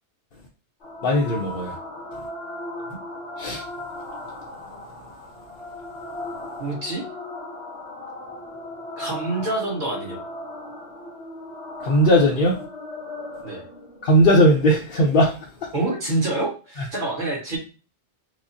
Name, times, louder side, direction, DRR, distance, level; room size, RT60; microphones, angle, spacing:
sound 1, 0.8-15.8, left 1 dB, 90° left, 1.5 m, -37 dB
voice 1, 1.0-1.8 3.4-3.6 11.8-12.6 14.0-15.4, equal, 60° left, -2 dB, 0.8 m, -18 dB
voice 2, 6.6-7.0 9.0-10.2 13.4-13.6 15.7-17.6, right 2 dB, 50° right, -4 dB, 1.5 m, -27 dB
4.8 x 2.0 x 2.7 m, 0.34 s
omnidirectional pair, 1.1 m